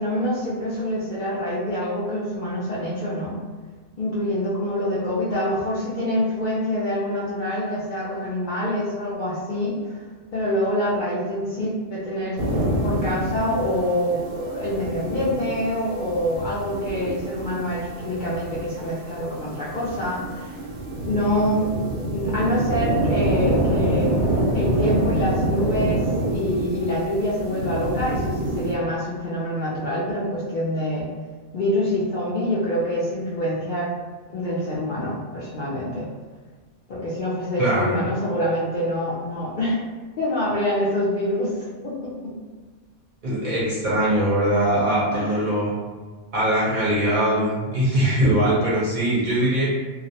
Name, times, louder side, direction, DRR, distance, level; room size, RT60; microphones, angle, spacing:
voice 1, 0.0-3.4 4.0-10.0 10.3-12.5 12.8-20.6 21.1-24.1 24.5-31.1 31.5-33.9 34.3-36.1 36.9-39.8 40.2-42.4 45.1-45.4, equal, 60° left, -8 dB, 0.5 m, -26 dB
sound 1, 12.4-28.7, right 1 dB, 80° right, 0.9 m, -26 dB
voice 2, 37.6-38.1 43.2-45.7 46.3-49.7, right 1 dB, 50° right, -7 dB, 0.6 m, -21 dB
2.4 x 2.0 x 2.7 m, 1.4 s
omnidirectional pair, 1.2 m